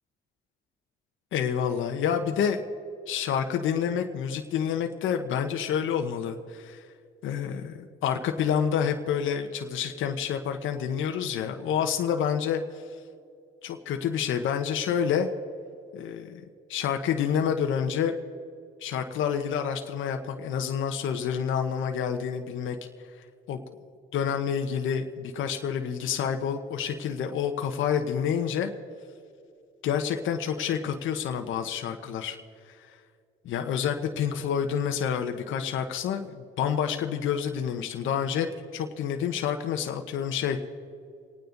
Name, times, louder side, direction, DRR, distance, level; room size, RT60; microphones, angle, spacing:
voice 1, 1.3-2.6 3.1-6.8 7.2-12.6 13.6-15.3 15.9-16.4 16.7-18.1 18.8-22.8 23.5-23.6 24.1-28.7 29.8-32.4 33.4-38.5 38.7-40.6, left 8 dB, 80° left, 5 dB, 1.1 m, -28 dB
29.0 x 9.6 x 4.0 m, 2.4 s
cardioid pair, 90°, 20 cm